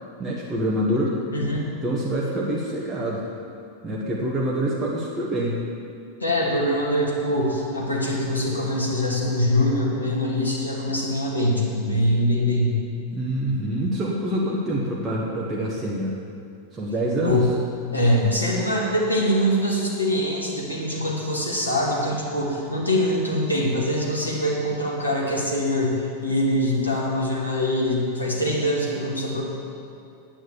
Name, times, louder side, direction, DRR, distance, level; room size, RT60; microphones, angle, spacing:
voice 1, 0.2-1.2 1.8-3.2 3.8-5.5 13.1-16.1 16.7-17.5, right 1 dB, 15° right, -5 dB, 1.5 m, -26 dB
voice 2, 1.3-1.7 6.2-12.8 17.2-17.5 17.9-29.4, left 1 dB, 80° left, -3 dB, 2.4 m, -23 dB
9.4 x 8.9 x 7.1 m, 2.5 s
figure-of-eight pair, 90°, 0 cm